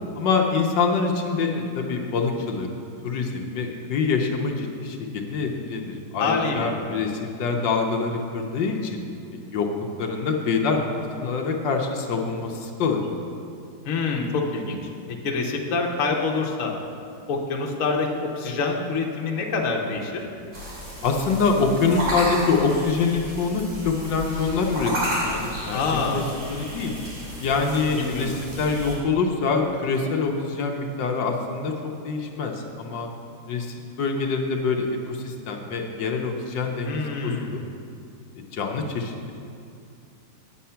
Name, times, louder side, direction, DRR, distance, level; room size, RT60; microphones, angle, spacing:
voice 1, 0.2-2.7 3.0-9.0 9.5-9.7 10.0-13.0 21.0-24.9 25.2-26.2 26.5-26.9 27.4-31.7 32.0-33.1 33.5-37.6 38.4-39.3, left 4 dB, 75° left, 1 dB, 1.5 m, -25 dB
voice 2, 6.2-6.7 13.8-14.8 15.2-16.7 17.3-20.2 25.7-26.3 28.0-28.3 36.8-37.6, left 4 dB, 50° left, 0 dB, 1.2 m, -26 dB
sound 1, 20.5-29.0, equal, 75° right, 3.5 m, -32 dB
8.7 x 8.5 x 5.7 m, 2.5 s
omnidirectional pair, 2.0 m